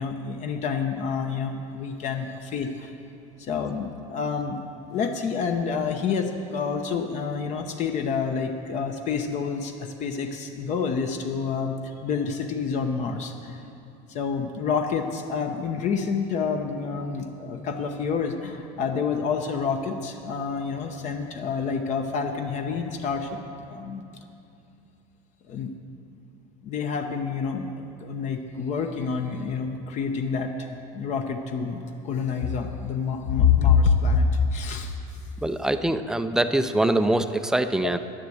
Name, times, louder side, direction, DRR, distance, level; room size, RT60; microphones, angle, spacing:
voice 1, 0.0-2.9 3.4-4.6 4.9-13.6 14.1-23.3 23.7-24.0 25.5-25.7 26.6-30.5 30.9-34.9 37.8-37.9, left 5 dB, 45° left, 4 dB, 0.8 m, -27 dB
voice 2, 35.4-38.0, right 1 dB, 5° right, 10 dB, 0.4 m, -23 dB
11.0 x 10.0 x 7.8 m, 2.6 s
cardioid pair, 150°, 16 cm